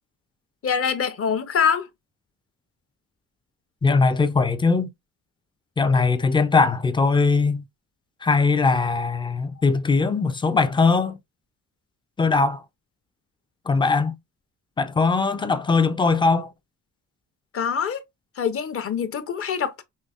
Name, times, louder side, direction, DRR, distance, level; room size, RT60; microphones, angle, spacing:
voice 1, 0.6-1.9 17.5-18.0 18.4-19.8, left 7 dB, 45° left, 0.6 m, -24 dB
voice 2, 3.8-4.9 5.8-7.6 8.2-11.2 12.2-12.6 13.7-14.2 14.8-16.5, left 4 dB, 15° left, 0.3 m, -20 dB
5.4 x 3.4 x 2.3 m
wide cardioid pair, 165°, 33 cm